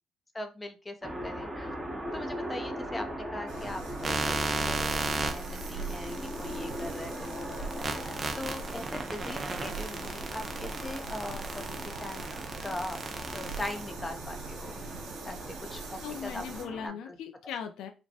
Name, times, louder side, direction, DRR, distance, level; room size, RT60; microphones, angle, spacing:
voice 1, 0.3-1.7 2.1-12.3 12.6-13.0 13.3-14.7 15.2-16.4 16.8-17.2, left 1 dB, 20° left, 6 dB, 0.7 m, -41 dB
sound 1, 1.0-16.9, equal, 10° right, 1.0 m, -40 dB
sound 2, 3.5-16.6, right 3 dB, 85° right, 1.0 m, -42 dB
sound 3, 4.0-13.9, right 3 dB, 35° right, 0.7 m, -34 dB
voice 2, 16.0-17.9, left 8 dB, 80° left, 6 dB, 0.6 m, -39 dB
5.0 x 2.2 x 2.8 m, 0.30 s
cardioid pair, 95°, 0 cm